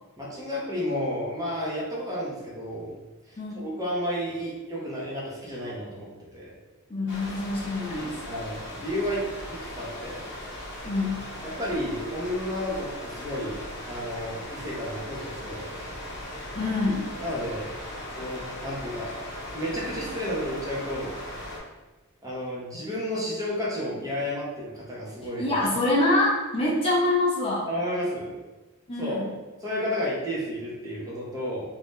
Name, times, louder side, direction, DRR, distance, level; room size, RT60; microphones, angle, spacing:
voice 1, 0.2-2.9 3.3-6.5 8.3-9.2 9.5-10.2 11.6-13.6 13.9-15.9 17.2-17.7 18.1-19.1 19.5-21.1 22.2-25.6 27.7-28.3 29.0-29.2 29.6-31.6, equal, 15° right, -6 dB, 0.7 m, -32 dB
voice 2, 6.9-8.2 10.8-11.3 16.5-17.1 25.4-27.7 28.9-29.3, left 2 dB, 25° left, -6 dB, 0.6 m, -25 dB
sound 1, 7.1-21.6, left 1 dB, 55° left, 0.9 m, -38 dB
2.6 x 2.3 x 3.5 m, 1.2 s
head